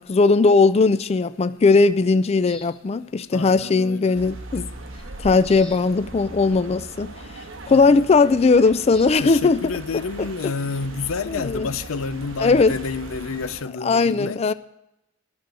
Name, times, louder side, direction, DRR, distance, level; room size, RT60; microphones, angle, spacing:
voice 1, 0.0-4.7 5.2-7.1 7.7-9.6 11.4-11.7 12.4-12.7 13.8-14.5, left 4 dB, 30° left, 0.4 m, -18 dB
sound 1, 2.5-2.8 4.9-5.1 5.4-5.8 6.4-6.5 8.9-9.1, left 2 dB, 10° left, 1.4 m, -42 dB
voice 2, 3.3-4.2 7.7-8.5 9.2-14.5, left 4 dB, 90° left, 0.6 m, -30 dB
sound 2, 4.1-13.6, right 2 dB, 75° right, 1.2 m, -39 dB
12.0 x 6.9 x 9.0 m
head